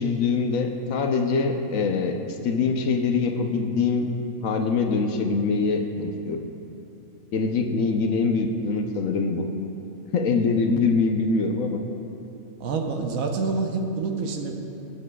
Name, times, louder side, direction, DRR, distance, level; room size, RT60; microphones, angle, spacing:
voice 1, 0.0-4.1 4.4-6.4 7.3-9.5 10.1-11.8, left 4 dB, 70° left, 4 dB, 1.1 m, -24 dB
voice 2, 12.6-14.6, right 4 dB, 75° right, 3 dB, 1.2 m, -27 dB
16.0 x 8.5 x 2.3 m, 2.8 s
omnidirectional pair, 1.5 m